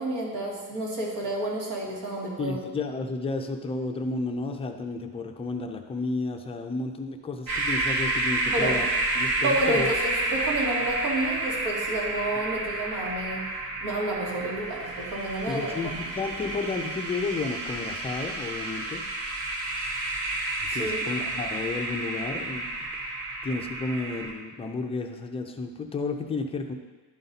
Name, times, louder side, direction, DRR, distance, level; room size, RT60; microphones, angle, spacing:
voice 1, 0.0-2.6 8.5-8.8 9.4-13.4 13.8-15.9 20.7-21.0, right 1 dB, 80° right, -3 dB, 2.0 m, -30 dB
voice 2, 2.4-8.9 9.1-9.9 13.9-14.0 15.5-19.0 20.7-22.7 23.4-26.7, left 3 dB, 15° left, 4 dB, 0.3 m, -32 dB
sound 1, 7.5-24.3, right 2 dB, 60° right, 1.2 m, -30 dB
11.5 x 4.0 x 4.0 m, 1.3 s
cardioid pair, 160°, 40 cm